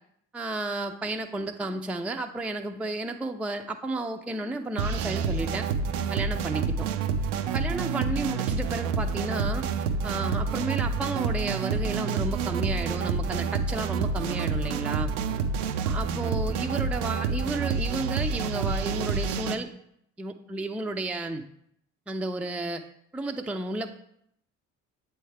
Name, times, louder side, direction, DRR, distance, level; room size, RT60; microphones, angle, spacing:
voice 1, 0.3-5.7 6.1-6.9 7.5-9.7 10.0-15.1 15.8-19.7 20.2-21.4 22.1-22.8 23.1-24.0, right 2 dB, 5° right, 5 dB, 0.4 m, -32 dB
sound 1, 4.8-19.6, right 5 dB, 85° right, 0.5 m, -28 dB
7.7 x 4.5 x 3.3 m, 0.72 s
hypercardioid pair, 50°, 36 cm